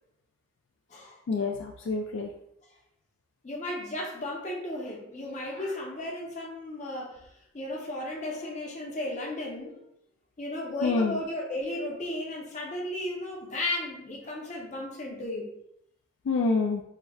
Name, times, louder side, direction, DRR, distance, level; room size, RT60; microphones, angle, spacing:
voice 1, 1.3-2.3 10.8-11.2 16.3-16.8, left 4 dB, 70° left, 1 dB, 0.3 m, -27 dB
voice 2, 3.4-7.3 7.5-9.9 10.4-15.5, left 1 dB, 35° left, -1 dB, 0.7 m, -34 dB
4.7 x 2.1 x 2.3 m, 0.77 s
head